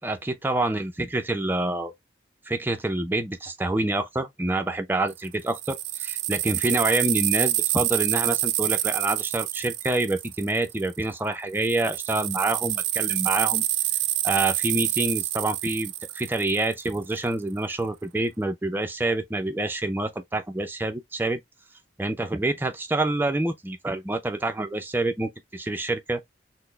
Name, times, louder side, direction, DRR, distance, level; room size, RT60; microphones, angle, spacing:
voice 1, 0.0-1.9 2.5-13.6 14.2-21.4 22.0-26.2, right 2 dB, 10° right, 0.4 m, -27 dB
sound 1, 5.1-11.0 11.6-17.0, right 14 dB, 85° right, 0.3 m, -27 dB
4.0 x 2.0 x 3.1 m
head